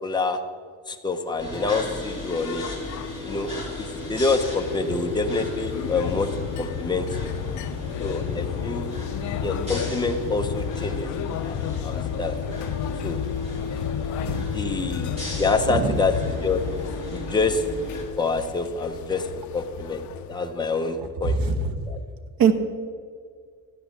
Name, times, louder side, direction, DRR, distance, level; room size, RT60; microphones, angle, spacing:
voice 1, 0.0-0.4 0.9-2.7 3.2-3.5 3.8-6.3 6.6-7.3 8.0-8.9 9.4-12.4 13.0-13.2 14.5-15.1 15.4-16.6 17.1-17.6 18.2-20.0 20.3-21.4 21.9-22.0, left 3 dB, 10° left, 4 dB, 0.9 m, -26 dB
sound 1, 1.4-18.0, left 2 dB, 15° right, 3.6 m, -35 dB
sound 2, 1.5-20.7, left 9 dB, 55° left, 0.6 m, -33 dB
voice 2, 14.2-14.8 15.7-16.1 21.2-21.8 22.4-22.5, right 5 dB, 80° right, 7 dB, 1.4 m, -23 dB
14.0 x 9.3 x 7.3 m, 2.1 s
cardioid pair, 175°, 34 cm